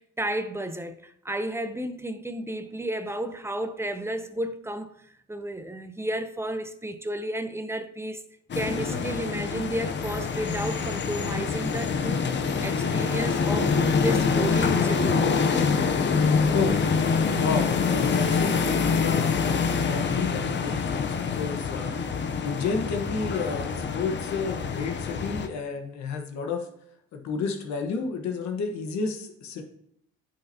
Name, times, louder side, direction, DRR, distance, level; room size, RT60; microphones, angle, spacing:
voice 1, 0.0-4.9 5.3-8.2 8.6-15.3, right 1 dB, 10° right, 0.7 m, -32 dB
sound 1, 8.5-25.5, left 5 dB, 40° left, 0.7 m, -25 dB
voice 2, 17.4-26.7 27.1-29.6, left 4 dB, 70° left, 1.4 m, -31 dB
9.9 x 5.7 x 2.8 m
supercardioid pair, 80°, 29 cm